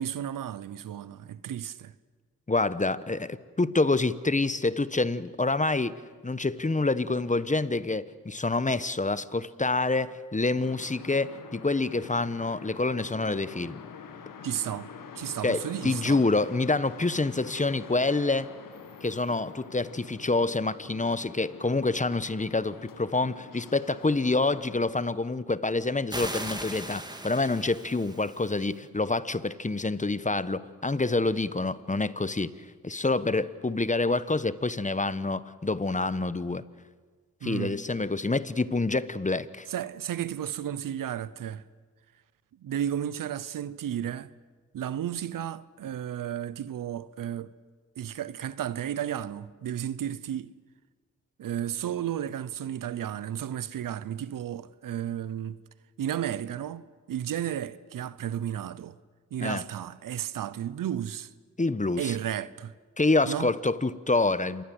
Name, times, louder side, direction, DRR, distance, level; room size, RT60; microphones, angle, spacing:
voice 1, 0.0-1.9 14.4-14.9 15.1-16.2 37.4-37.8 39.7-41.6 42.6-44.3 44.7-47.5 48.0-50.5 51.4-55.6 56.0-59.0 59.3-61.3 62.0-62.7 63.3-63.5, right 10 dB, 90° right, 0.8 m, -33 dB
voice 2, 2.5-13.8 15.4-18.5 19.0-32.5 32.8-36.6 37.4-39.7 59.4-59.6 61.6-62.1 63.0-64.6, left 3 dB, 25° left, 1.1 m, -27 dB
sound 1, 10.6-24.9, left 6 dB, 85° left, 1.9 m, -46 dB
sound 2, 26.1-28.7, right 1 dB, 15° right, 2.4 m, -38 dB
26.5 x 21.0 x 7.9 m
cardioid pair, 45°, 32 cm